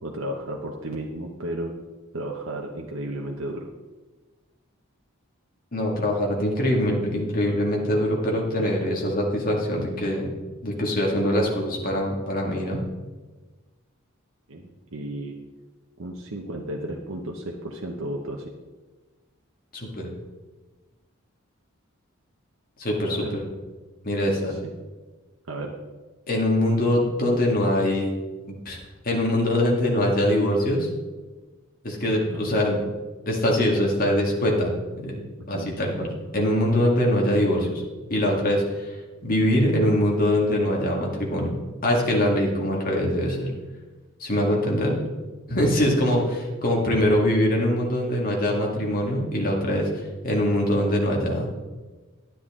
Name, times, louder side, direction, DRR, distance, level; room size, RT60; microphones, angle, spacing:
voice 1, 0.0-1.7 2.1-3.7 14.5-15.4 16.0-18.4 23.1-23.3 24.3-24.7 25.5-25.7 32.3-32.6 35.5-35.7 44.9-45.0 46.0-46.3, right 1 dB, 70° right, 0 dB, 0.9 m, -33 dB
voice 2, 5.7-10.3 10.6-12.8 19.7-20.1 22.8-23.4 24.0-24.5 26.3-28.1 28.7-28.8 29.0-30.9 31.8-32.8 33.3-36.1 36.3-37.8 38.1-39.0 39.2-41.5 41.8-43.5 44.2-44.9 45.5-46.2 46.6-49.9 50.2-51.5, left 1 dB, 45° left, -1 dB, 2.0 m, -23 dB
10.0 x 9.9 x 3.7 m, 1.3 s
head